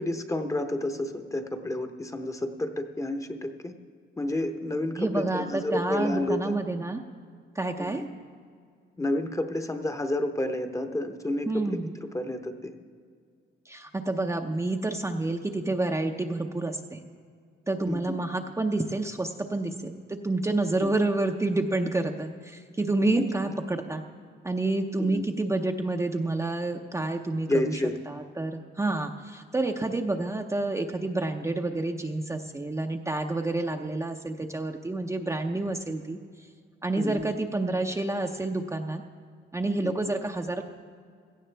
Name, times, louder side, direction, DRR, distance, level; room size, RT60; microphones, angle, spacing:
voice 1, 0.0-3.7 4.2-6.6 7.8-8.1 9.0-12.8 17.9-18.0 20.8-20.9 23.2-23.3 25.0-25.2 27.5-27.9 37.0-37.2 39.8-39.9, left 1 dB, 15° left, 6 dB, 0.9 m, -30 dB
voice 2, 5.0-7.0 7.5-8.0 11.5-11.9 13.7-17.0 17.7-24.0 24.4-36.2 36.8-39.0 39.5-40.6, right 2 dB, 15° right, 3 dB, 0.7 m, -29 dB
16.5 x 14.0 x 3.4 m, 2.1 s
cardioid pair, 90°, 20 cm